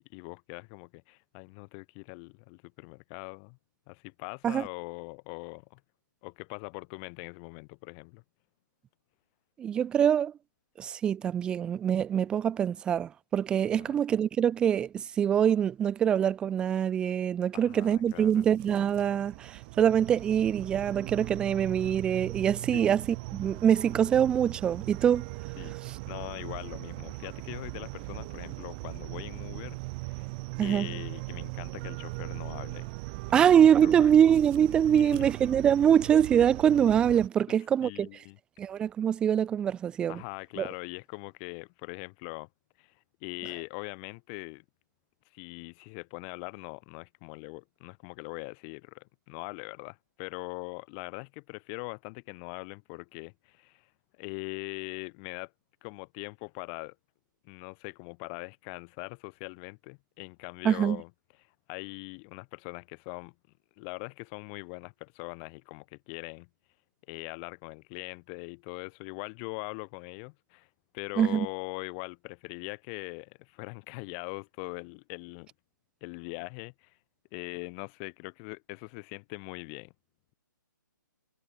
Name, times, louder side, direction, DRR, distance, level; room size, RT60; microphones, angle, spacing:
voice 1, 0.0-3.6 3.9-5.8 6.2-8.2 13.8-13.9 17.5-18.5 22.7-22.9 25.6-25.8 26.1-29.8 30.0-30.3 30.6-32.9 33.3-33.5 33.8-34.1 34.9-35.3 37.8-38.4 40.1-42.5 42.8-42.9 43.2-44.6 45.3-53.9 54.2-55.5 55.8-56.9 57.4-61.1 61.7-63.3 63.8-66.5 67.1-70.7 70.9-75.5 76.0-76.9 77.3-79.9, left 40 dB or more, 25° left, 3.1 m, -41 dB
voice 2, 9.6-10.3 10.8-25.3 25.9-26.0 30.6-31.0 33.3-38.1 38.6-40.2 40.6-40.7 60.6-61.0 71.2-71.5, right 9 dB, 10° right, 0.3 m, -24 dB
sound 1, 17.8-37.3, right 28 dB, 30° right, 2.6 m, -39 dB
figure-of-eight pair, 140°, 11 cm